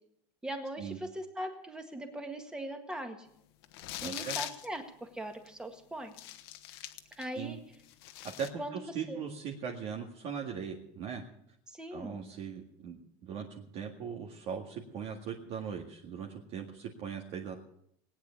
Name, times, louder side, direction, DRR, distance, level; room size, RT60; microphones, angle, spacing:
voice 1, 0.4-3.3 4.0-6.1 7.2-7.6 8.6-9.2 11.7-12.3, right 1 dB, 5° right, 5 dB, 1.8 m, -40 dB
sound 1, 3.6-4.7 5.5-5.6 6.1-7.4 7.7-8.5, left 13 dB, 80° left, 1.3 m, -41 dB
voice 2, 4.0-4.4 7.3-7.6 8.2-11.2 11.9-17.6, right 7 dB, 55° right, 0 dB, 2.0 m, -40 dB
19.0 x 9.5 x 7.1 m, 0.73 s
cardioid pair, 160°, 12 cm